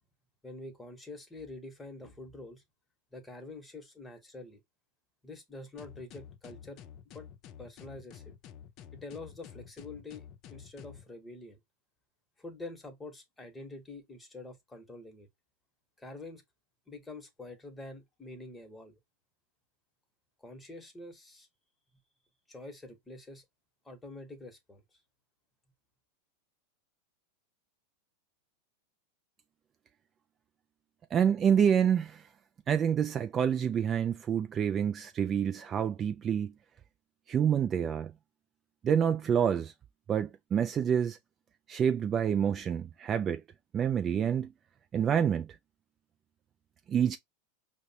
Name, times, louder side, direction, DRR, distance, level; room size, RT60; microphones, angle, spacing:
voice 1, 0.4-2.6 3.1-4.6 5.2-6.8 7.1-7.3 7.6-8.3 8.9-11.6 12.4-15.3 16.0-16.4 16.9-19.0 20.4-21.5 22.5-23.4 23.8-24.8, left 2 dB, 10° left, 1.0 m, -46 dB
sound 1, 5.8-11.1, left 9 dB, 45° left, 0.4 m, -50 dB
voice 2, 31.1-32.2 32.7-36.5 37.3-38.1 38.8-39.7 40.1-41.2 41.7-43.4 43.7-44.5 44.9-45.5 46.9-47.2, right 8 dB, 30° right, 0.3 m, -27 dB
4.8 x 2.1 x 2.7 m
hypercardioid pair, 105°, 0 cm